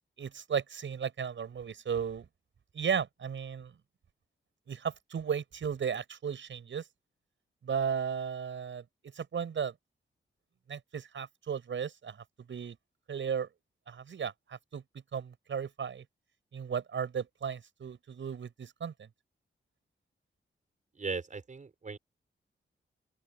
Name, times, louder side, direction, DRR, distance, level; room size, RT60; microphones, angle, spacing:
voice 1, 0.2-2.3 2.7-3.7 4.7-6.8 7.6-8.8 9.1-9.7 10.7-12.8 13.1-13.5 13.9-14.8 15.1-16.0 16.5-19.1, right 7 dB, 70° right, 7.5 m, -35 dB
voice 2, 21.0-22.0, right 4 dB, 40° right, 6.2 m, -38 dB
open air
wide cardioid pair, 145°, 21 cm